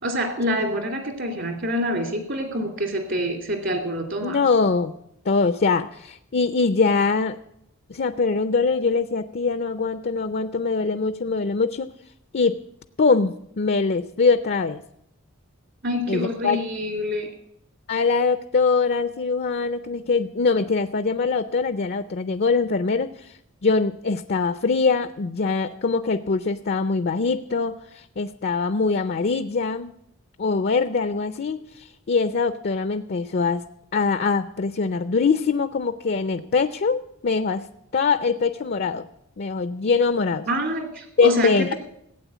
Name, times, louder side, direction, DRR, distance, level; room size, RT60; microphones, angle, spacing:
voice 1, 0.0-4.4 15.8-17.3 40.5-41.7, equal, 60° right, 4 dB, 2.5 m, -26 dB
voice 2, 4.2-4.9 5.3-7.4 7.9-11.9 12.3-12.6 13.0-14.8 16.1-16.6 17.9-23.3 23.6-29.9 30.4-33.6 33.9-37.7 37.9-39.1 39.4-40.5 41.2-41.7, left 4 dB, 50° left, 12 dB, 0.5 m, -23 dB
16.0 x 8.7 x 8.2 m, 0.76 s
head